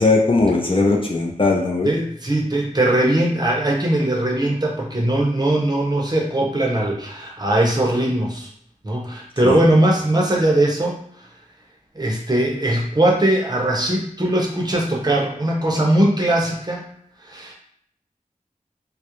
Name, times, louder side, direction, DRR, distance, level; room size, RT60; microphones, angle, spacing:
voice 1, 0.0-1.9 9.4-9.6, left 3 dB, 40° left, 0 dB, 0.4 m, -18 dB
voice 2, 1.8-8.5 8.8-11.0 12.0-16.9 17.3-17.5, right 1 dB, 30° right, -1 dB, 0.6 m, -20 dB
2.3 x 2.0 x 2.9 m, 0.66 s
wide cardioid pair, 50°, 14 cm